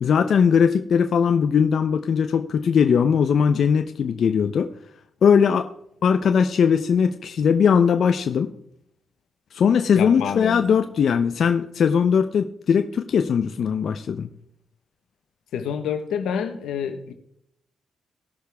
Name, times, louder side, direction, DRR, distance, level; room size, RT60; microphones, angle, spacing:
voice 1, 0.0-4.7 5.2-5.7 6.0-8.5 9.5-14.3, left 7 dB, 65° left, 8 dB, 0.6 m, -20 dB
voice 2, 9.9-10.6 15.5-17.1, left 7 dB, 80° left, 7 dB, 1.1 m, -28 dB
18.0 x 6.5 x 3.5 m, 0.74 s
supercardioid pair, 55°, 0 cm